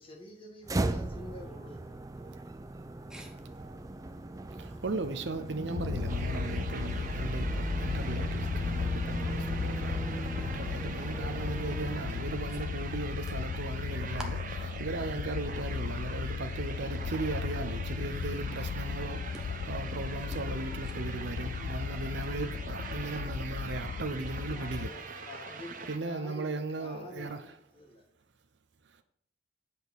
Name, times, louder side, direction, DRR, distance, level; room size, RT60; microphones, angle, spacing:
voice 1, 0.0-1.8 21.9-22.2 24.5-25.0 25.3-28.0, left 2 dB, 30° left, 1.7 m, -47 dB
sound 1, 0.6-12.6, right 2 dB, 20° right, 0.4 m, -37 dB
voice 2, 3.1-4.8 12.5-12.6 20.3-20.4 20.8-20.9, right 1 dB, 5° right, 1.1 m, -55 dB
voice 3, 4.6-14.2 14.8-19.2 19.7-25.1 25.8-27.6, right 3 dB, 70° right, 0.6 m, -37 dB
sound 2, 5.7-24.9, left 6 dB, 75° left, 0.3 m, -36 dB
sound 3, 6.1-26.0, right 4 dB, 45° right, 1.0 m, -43 dB
8.0 x 4.3 x 7.0 m
head